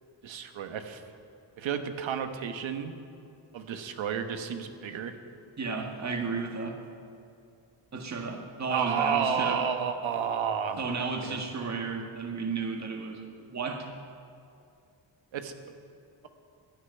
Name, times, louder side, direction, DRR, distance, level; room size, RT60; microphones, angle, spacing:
voice 1, 0.2-1.0 1.6-2.9 3.5-5.1 8.7-10.8 11.2-11.4 15.3-15.5, right 7 dB, 90° right, 7 dB, 1.3 m, -31 dB
voice 2, 5.6-6.8 7.9-9.6 10.8-13.9, right 4 dB, 35° right, 2 dB, 1.7 m, -33 dB
13.5 x 10.5 x 9.7 m, 2.5 s
cardioid pair, 105°, 45 cm